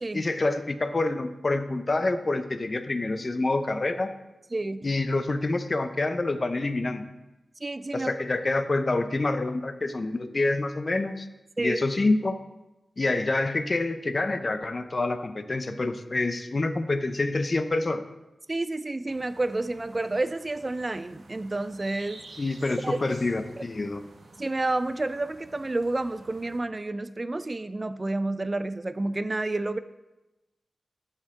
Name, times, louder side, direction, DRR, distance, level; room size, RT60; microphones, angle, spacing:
voice 1, 0.1-4.1 4.8-7.1 7.9-11.3 11.6-12.4 13.0-18.0 22.4-24.0, left 2 dB, 45° left, 10 dB, 0.6 m, -27 dB
voice 2, 4.5-4.9 7.6-8.1 11.6-11.8 18.5-22.2 22.8-23.0 24.4-29.8, right 2 dB, 35° right, 13 dB, 0.3 m, -30 dB
sound 1, 19.1-26.6, right 2 dB, 85° right, 0.9 m, -51 dB
12.0 x 4.5 x 3.6 m, 1.0 s
cardioid pair, 50°, 0 cm